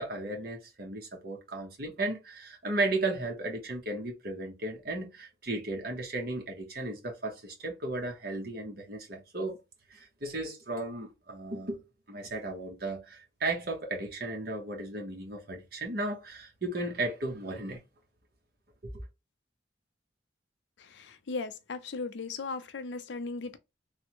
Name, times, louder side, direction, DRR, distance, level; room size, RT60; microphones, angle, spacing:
voice 1, 0.0-9.6 9.9-11.8 12.1-17.8 18.8-18.9, right 2 dB, 50° right, 1.0 m, -35 dB
voice 2, 20.9-23.6, left 4 dB, 65° left, 0.5 m, -37 dB
3.3 x 2.1 x 2.9 m
head